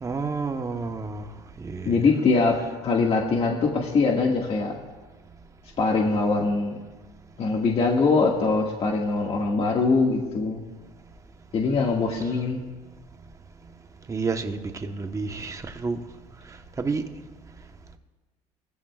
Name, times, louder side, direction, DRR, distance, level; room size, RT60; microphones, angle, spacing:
voice 1, 0.0-1.2 1.6-2.0 14.1-16.0 16.8-17.0, right 4 dB, 20° right, 5 dB, 1.1 m, -30 dB
voice 2, 1.9-2.6 2.8-4.7 5.8-6.7 7.4-10.6 11.5-12.7, left 4 dB, 40° left, -1 dB, 1.9 m, -22 dB
22.0 x 15.0 x 2.4 m, 1.2 s
cardioid pair, 115°, 15 cm